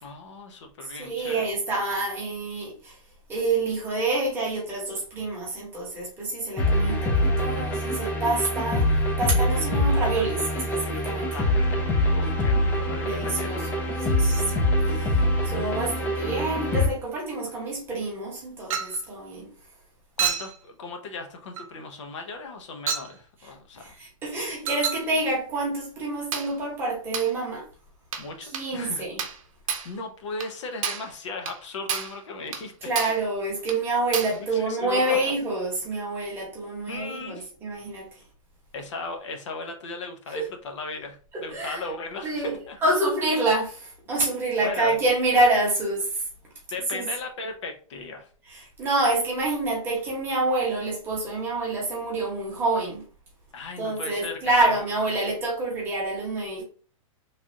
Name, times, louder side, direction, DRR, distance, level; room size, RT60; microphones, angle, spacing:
voice 1, 0.0-1.4 11.1-14.2 20.2-23.8 28.2-29.1 29.8-32.9 34.3-35.2 36.9-37.5 38.7-42.8 44.6-45.0 46.7-48.3 53.5-54.7, left 3 dB, 60° left, 0.7 m, -37 dB
voice 2, 1.0-3.0 3.3-11.3 13.0-13.6 14.1-14.5 14.9-19.5 23.8-27.7 28.4-29.2 32.8-38.2 40.3-40.5 41.3-41.8 42.2-42.5 42.8-46.3 46.9-47.0 48.5-53.0 53.8-56.6, right 2 dB, 15° right, 1.0 m, -27 dB
sound 1, 6.6-16.9, left 1 dB, 10° left, 0.4 m, -24 dB
Chink clink, 18.7-19.0 20.2-20.6 21.6-21.7 22.9-23.1 24.7-25.1 26.3-26.5 27.1-27.3 28.1-28.3 28.5-28.7 29.2-29.4 29.7-29.9 30.4-30.5 30.8-31.1 31.5-31.6 31.9-32.2 32.5-32.7 33.0-33.2 33.7-33.8 34.1-34.4, right 7 dB, 75° right, 0.6 m, -30 dB
3.2 x 2.4 x 2.6 m
hypercardioid pair, 160°, 17 cm